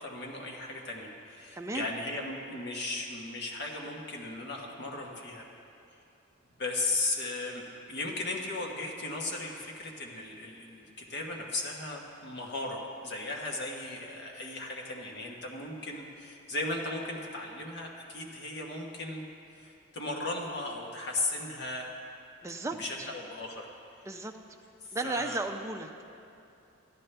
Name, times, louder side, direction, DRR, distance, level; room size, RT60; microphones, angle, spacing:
voice 1, 0.0-5.5 5.9-6.0 6.6-19.2 19.5-21.9 22.7-23.7 23.9-24.2 24.8-25.4, left 2 dB, 55° left, 0 dB, 1.3 m, -36 dB
voice 2, 1.5-1.9 22.4-23.1 24.1-24.4 24.9-26.0, right 2 dB, 15° right, 4 dB, 0.4 m, -35 dB
14.0 x 10.5 x 3.4 m, 2.7 s
head